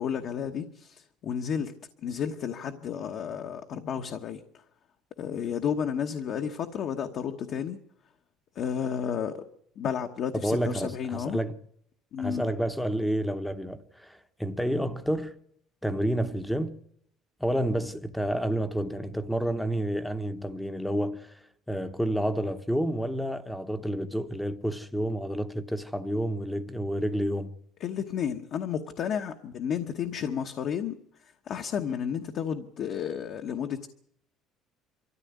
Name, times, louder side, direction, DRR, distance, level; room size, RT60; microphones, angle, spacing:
voice 1, 0.0-1.7 2.0-4.6 5.2-7.8 8.5-9.5 9.8-11.4 12.1-12.4 27.8-33.9, left 8 dB, 45° left, 1.1 m, -32 dB
voice 2, 10.4-11.5 12.2-15.3 15.8-16.7 17.4-21.3 21.7-27.5, equal, ahead, 0.9 m, -29 dB
24.0 x 14.0 x 9.5 m
cardioid pair, 170°, 0 cm